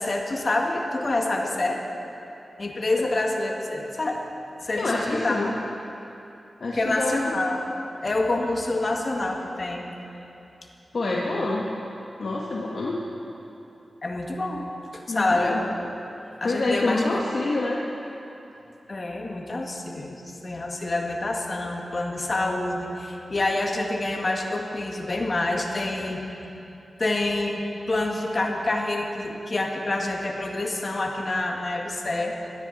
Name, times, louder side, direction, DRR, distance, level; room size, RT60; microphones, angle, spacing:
voice 1, 0.0-1.8 2.6-4.2 4.6-5.4 6.7-7.6 8.0-9.9 14.0-15.8 16.4-17.2 18.9-26.2 27.0-32.4, left 2 dB, 50° left, 1 dB, 1.9 m, -27 dB
voice 2, 4.8-5.5 6.6-7.4 8.4-8.5 10.9-11.7 12.2-13.0 15.1-15.7 16.4-17.8, left 2 dB, 65° left, -4 dB, 1.5 m, -27 dB
17.5 x 13.5 x 4.2 m, 2.9 s
cardioid pair, 45°, 0 cm